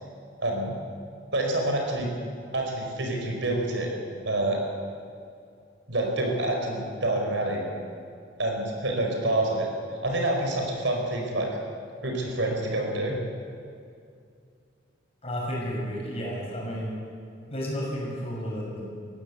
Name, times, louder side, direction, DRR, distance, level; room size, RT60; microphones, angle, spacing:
voice 1, 0.4-0.8 1.3-2.1 2.5-3.9 4.2-4.6 5.9-7.6 8.4-11.5 12.0-13.2, right 1 dB, 70° right, 1 dB, 4.7 m, -27 dB
voice 2, 15.2-16.9 17.5-18.8, equal, 30° left, -3 dB, 6.6 m, -32 dB
20.5 x 16.0 x 8.4 m, 2.4 s
head